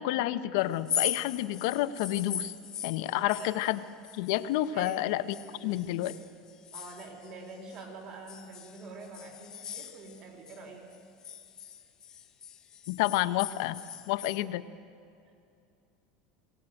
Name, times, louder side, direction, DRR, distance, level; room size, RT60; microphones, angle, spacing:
voice 1, 0.0-2.5 2.8-3.8 4.1-5.2 5.6-6.2 12.9-13.8 14.1-14.7, left 15 dB, 70° left, 12 dB, 0.9 m, -29 dB
sound 1, 0.7-5.0 5.3-7.8 8.3-10.6 10.9-14.4, left 9 dB, 25° left, 1.1 m, -39 dB
voice 2, 3.1-3.6 4.7-5.1 5.5-5.9 6.7-10.8, right 3 dB, 40° right, 3 dB, 3.9 m, -45 dB
21.5 x 17.5 x 9.1 m, 2.5 s
supercardioid pair, 150°, 2 cm